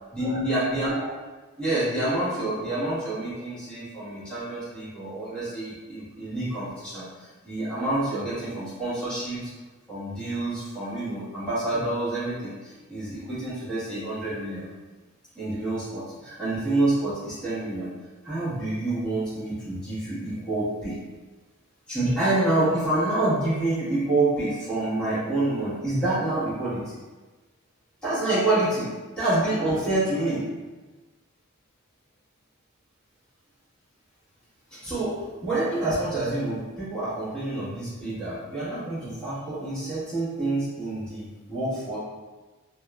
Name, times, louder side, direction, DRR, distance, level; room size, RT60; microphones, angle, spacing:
voice 1, 0.1-1.1 1.6-9.4 9.9-14.6 15.3-17.9 18.2-21.0 21.9-26.9 28.0-30.4 34.8-42.0, right 2 dB, 5° left, -13 dB, 1.4 m, -27 dB
3.4 x 2.2 x 2.4 m, 1.3 s
head